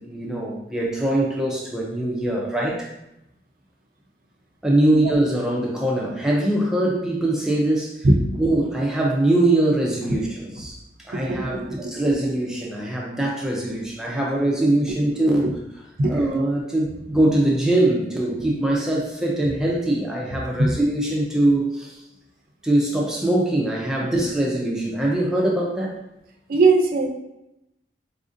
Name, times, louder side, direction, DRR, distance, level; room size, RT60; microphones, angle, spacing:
voice 1, 0.0-2.9 4.6-8.0 8.4-10.8 11.0-15.6 16.1-22.0 22.6-26.0, right 1 dB, 5° right, -3 dB, 0.5 m, -22 dB
voice 2, 8.0-8.4 11.1-11.4 11.8-11.9 16.0-16.2 20.6-20.7 26.5-27.1, right 2 dB, 55° right, 4 dB, 0.5 m, -19 dB
4.1 x 2.5 x 2.5 m, 0.86 s
head